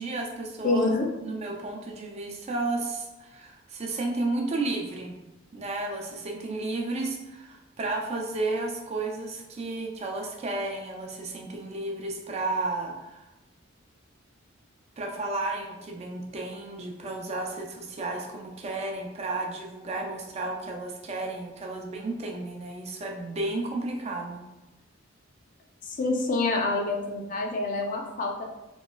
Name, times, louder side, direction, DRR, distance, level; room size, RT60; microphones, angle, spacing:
voice 1, 0.0-0.9 1.2-5.2 5.5-13.3 15.0-24.4, right 2 dB, 30° right, 1 dB, 0.4 m, -32 dB
voice 2, 0.6-1.1 25.9-28.4, left 3 dB, 40° left, 0 dB, 0.4 m, -27 dB
3.0 x 2.3 x 2.2 m, 1.0 s
head